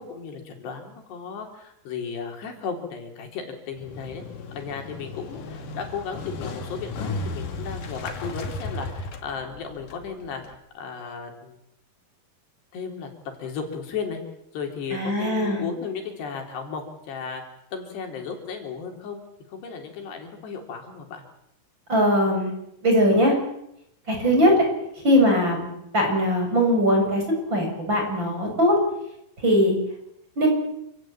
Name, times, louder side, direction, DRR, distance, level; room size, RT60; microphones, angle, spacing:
voice 1, 0.0-4.2 4.5-11.6 12.7-14.2 14.5-17.4 17.7-21.2, left 6 dB, 85° left, 4 dB, 5.9 m, -35 dB
Motorcycle, 3.8-10.6, left 3 dB, 55° left, 3.8 m, -35 dB
voice 2, 14.9-15.6 21.9-22.5 22.8-23.3 24.1-24.6 24.9-27.2 27.5-28.8 29.4-29.8 30.4-30.5, equal, 25° right, 2 dB, 7.7 m, -20 dB
28.0 x 18.0 x 9.1 m, 0.79 s
omnidirectional pair, 4.7 m